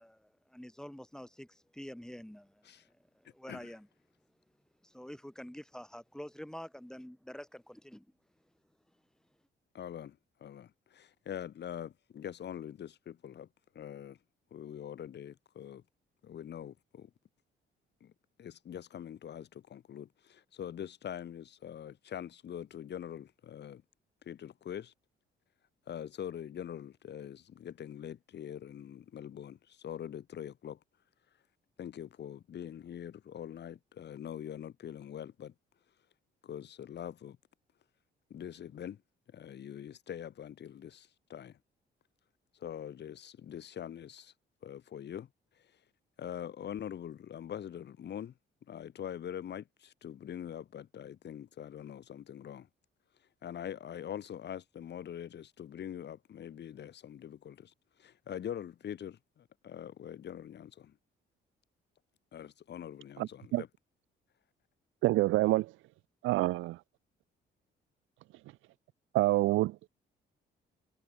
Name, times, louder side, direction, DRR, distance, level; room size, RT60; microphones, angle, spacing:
voice 1, 0.0-3.9 4.8-8.1, equal, 5° left, 2.3 m, -47 dB
voice 2, 9.7-13.5 13.7-14.2 14.5-15.8 16.2-17.1 18.0-18.1 18.4-23.8 24.2-24.9 25.9-30.8 31.8-35.5 36.4-37.4 38.3-39.0 39.3-41.6 42.5-44.3 44.6-45.3 45.6-45.7 46.2-48.3 48.7-52.7 53.4-57.7 58.0-61.0 62.3-63.7, left 9 dB, 60° left, 2.1 m, -43 dB
voice 3, 63.2-63.6 65.0-65.7 66.2-66.8 69.1-69.8, right 18 dB, 85° right, 0.5 m, -27 dB
cardioid pair, 90°, 20 cm